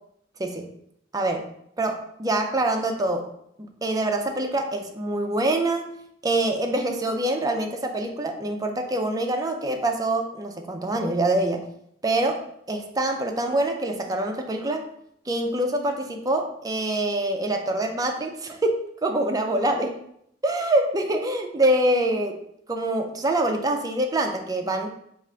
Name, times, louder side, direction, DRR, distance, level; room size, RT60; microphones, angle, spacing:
voice 1, 1.1-1.5 1.8-3.3 3.8-5.9 6.2-11.6 12.0-14.9 15.3-20.0 20.4-22.4 22.7-24.9, right 1 dB, 20° right, 4 dB, 0.4 m, -25 dB
4.8 x 2.4 x 3.2 m, 0.72 s
head